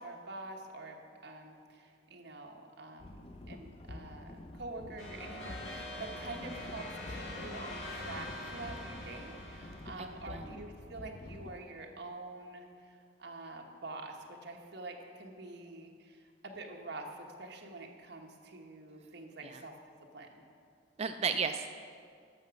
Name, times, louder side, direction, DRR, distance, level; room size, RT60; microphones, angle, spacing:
voice 1, 0.0-19.8 20.1-20.4, right 2 dB, 60° right, 1 dB, 1.2 m, -46 dB
sound 1, 3.0-11.6, left 2 dB, 30° left, 0.4 m, -48 dB
sound 2, 5.0-10.5, left 1 dB, 75° left, 2.7 m, -44 dB
voice 2, 10.0-10.5 19.4-19.6 21.0-21.7, right 6 dB, 35° right, 8 dB, 0.3 m, -34 dB
11.0 x 6.8 x 6.3 m, 2.3 s
head